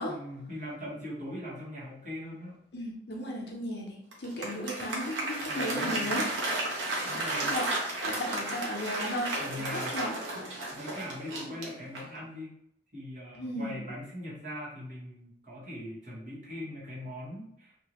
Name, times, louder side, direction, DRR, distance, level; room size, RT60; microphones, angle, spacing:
voice 1, 0.0-2.6 5.5-6.2 6.8-7.5 9.4-10.0 10.7-12.5 12.9-17.8, left 1 dB, 45° right, -7 dB, 1.3 m, -41 dB
voice 2, 2.7-6.4 7.2-7.7 8.0-9.3 9.7-10.1 13.3-13.7, equal, 60° left, -1 dB, 0.7 m, -35 dB
Applause, 4.1-12.2, right 2 dB, 85° right, 0.8 m, -33 dB
2.7 x 2.6 x 3.0 m, 0.74 s
head